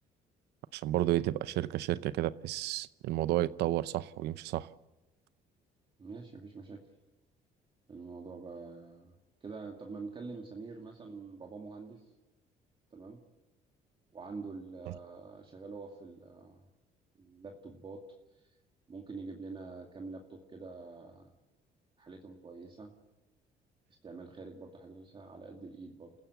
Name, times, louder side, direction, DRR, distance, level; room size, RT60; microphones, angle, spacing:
voice 1, 0.7-4.7, right 14 dB, 80° right, 0.7 m, -31 dB
voice 2, 6.0-6.8 7.9-9.1 9.4-12.1 12.9-13.2 14.1-16.6 17.2-18.0 18.9-21.3 22.0-22.9 24.0-26.1, right 4 dB, 30° right, 2.3 m, -46 dB
28.5 x 15.5 x 8.1 m
cardioid pair, 110°, 17 cm